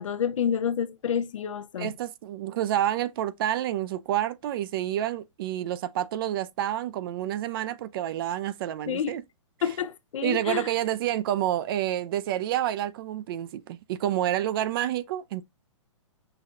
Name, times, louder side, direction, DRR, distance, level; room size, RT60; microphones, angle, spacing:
voice 1, 0.0-1.9 8.9-9.2 9.6-10.7, left 8 dB, 75° left, 0.6 m, -29 dB
voice 2, 1.8-9.2 10.2-15.5, right 12 dB, 45° right, 0.4 m, -29 dB
5.7 x 2.3 x 2.6 m
hypercardioid pair, 135°, 16 cm